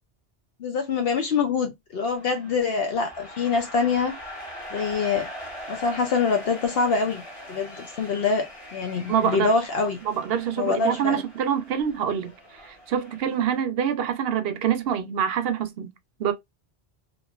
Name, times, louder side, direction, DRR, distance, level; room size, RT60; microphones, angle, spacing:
voice 1, 0.6-4.1 4.7-5.3 5.7-7.2 7.5-10.0 10.6-11.2, left 4 dB, 70° left, 0.9 m, -25 dB
sound 1, 2.1-13.6, equal, 30° left, 1.6 m, -42 dB
voice 2, 9.1-9.5 10.1-12.3 12.6-15.9 16.2-16.3, right 8 dB, 70° right, 0.8 m, -25 dB
3.0 x 2.5 x 2.3 m
omnidirectional pair, 1.1 m